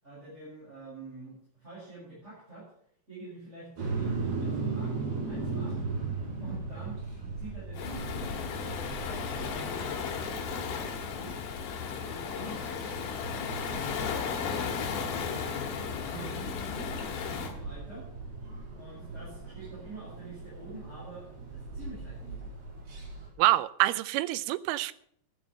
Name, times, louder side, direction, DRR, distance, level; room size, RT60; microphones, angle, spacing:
voice 1, 0.0-2.7 3.1-5.8 6.4-7.0 7.4-11.4 12.0-15.7 17.2-18.1 18.7-22.5, right 2 dB, 15° right, 6.6 m, -47 dB
sound 1, 3.8-23.3, right 3 dB, 55° right, 6.0 m, -38 dB
Waves surf, 7.7-17.5, left 6 dB, 70° left, 3.3 m, -35 dB
voice 2, 16.1-16.5 23.4-24.9, right 17 dB, 80° right, 2.4 m, -27 dB
12.0 x 9.0 x 6.7 m
omnidirectional pair, 4.6 m